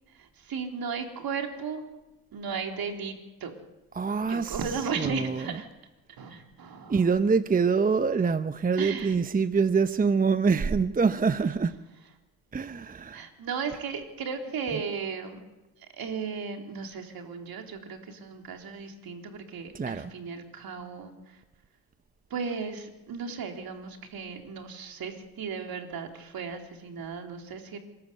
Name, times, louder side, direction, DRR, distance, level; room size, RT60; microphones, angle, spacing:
voice 1, 0.1-1.8 2.3-3.1 3.4-3.5 4.3-5.7 6.2-7.0 8.8-9.1 13.1-15.4 15.8-21.4 22.3-27.8, right 5 dB, 55° right, 3.8 m, -35 dB
voice 2, 3.9-5.6 6.9-11.8 12.5-13.2 14.7-14.8 19.7-20.1, right 5 dB, 20° right, 0.8 m, -25 dB
27.5 x 12.5 x 8.2 m
supercardioid pair, 75°, 43 cm